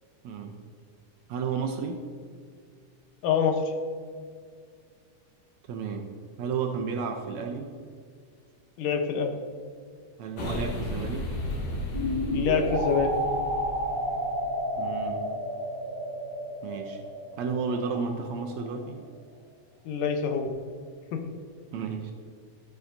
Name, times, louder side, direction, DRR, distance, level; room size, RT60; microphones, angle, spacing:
voice 1, 0.2-0.6 1.3-2.0 5.7-6.1 6.4-7.7 10.2-11.3 14.8-15.2 16.6-17.0 17.4-19.0 21.7-22.1, right 5 dB, 75° right, 4 dB, 1.7 m, -32 dB
voice 2, 3.2-3.6 8.8-9.3 12.3-13.1 19.9-20.5 21.1-21.2, left 6 dB, 90° left, 5 dB, 2.5 m, -25 dB
sound 1, 10.4-14.6, left 1 dB, 65° left, 2.6 m, -34 dB
sound 2, 11.9-18.8, equal, 45° left, 2.1 m, -32 dB
13.0 x 7.1 x 2.6 m, 2.1 s
omnidirectional pair, 3.6 m